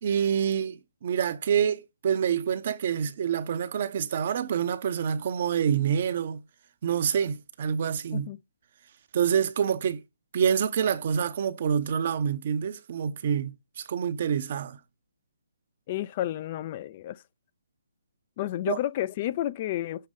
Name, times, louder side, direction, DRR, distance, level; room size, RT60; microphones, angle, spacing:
voice 1, 0.0-6.4 6.8-8.3 9.1-10.0 10.3-14.8 18.7-18.8, right 8 dB, 45° right, 0.7 m, -27 dB
voice 2, 15.9-17.2 18.4-20.1, left 13 dB, 35° left, 0.3 m, -31 dB
6.6 x 3.1 x 5.2 m
hypercardioid pair, 155°, 0 cm